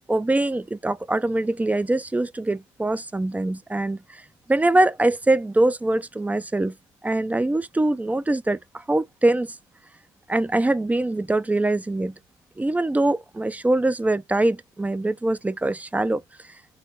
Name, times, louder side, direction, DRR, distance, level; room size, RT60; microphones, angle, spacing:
voice 1, 0.1-4.2 4.5-6.7 7.0-9.6 10.3-12.1 12.6-16.2, right 2 dB, 10° right, 0.3 m, -23 dB
4.3 x 2.2 x 2.9 m
cardioid pair, 110°, 17 cm